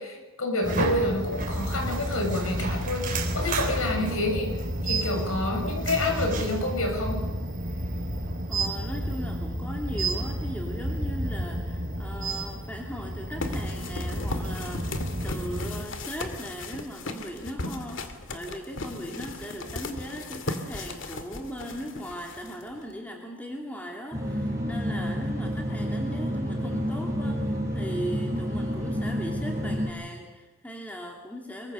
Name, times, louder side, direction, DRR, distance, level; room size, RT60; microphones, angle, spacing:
voice 1, 0.0-7.3, left 1 dB, 80° left, 3 dB, 7.2 m, -28 dB
sound 1, 0.6-15.8, right 1 dB, 40° right, 4.1 m, -31 dB
voice 2, 8.5-31.7, equal, 5° left, 0 dB, 2.7 m, -38 dB
sound 2, 13.4-22.9, left 2 dB, 60° left, 2.4 m, -36 dB
sound 3, 24.1-29.9, equal, 15° right, 6.3 m, -29 dB
25.0 x 23.0 x 6.8 m, 1.2 s
head